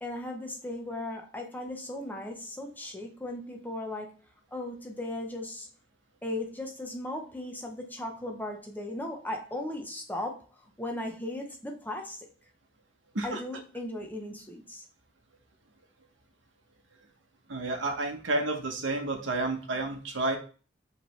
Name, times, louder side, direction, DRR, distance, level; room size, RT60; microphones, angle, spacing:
voice 1, 0.0-4.1 4.5-5.7 6.2-12.3 13.2-14.8, left 1 dB, 10° left, 0.7 m, -37 dB
voice 2, 17.5-20.4, right 2 dB, 75° right, 1.0 m, -30 dB
4.9 x 3.3 x 3.2 m
head